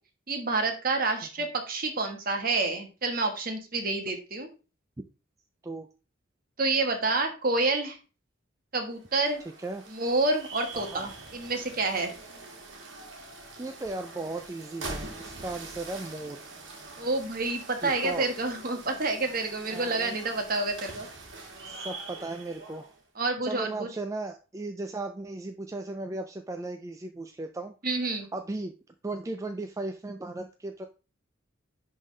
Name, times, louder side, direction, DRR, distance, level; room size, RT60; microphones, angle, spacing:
voice 1, 0.3-4.5 6.6-8.0 8.7-9.4 9.9-12.1 17.0-21.1 23.2-23.9 27.8-28.3, right 3 dB, 45° right, 4 dB, 1.3 m, -28 dB
sound 1, 8.9-23.0, right 3 dB, 65° right, 1.8 m, -43 dB
voice 2, 10.7-11.1 13.5-16.5 17.8-18.3 19.7-20.2 21.6-22.9 23.4-28.7 29.0-30.9, right 2 dB, 15° right, 6 dB, 0.3 m, -36 dB
10.5 x 3.7 x 3.2 m, 0.33 s
head